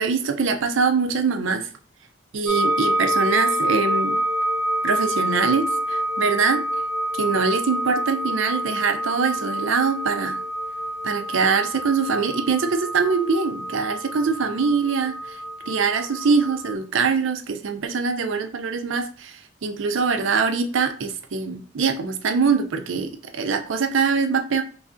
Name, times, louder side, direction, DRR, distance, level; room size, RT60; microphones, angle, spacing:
voice 1, 0.0-1.7 2.3-4.2 4.8-6.6 7.2-10.4 11.0-15.4 15.7-24.6, right 5 dB, 70° right, 7 dB, 0.5 m, -23 dB
sound 1, 2.5-16.7, right 1 dB, 5° left, 0.7 m, -27 dB
3.1 x 2.5 x 3.5 m, 0.41 s
head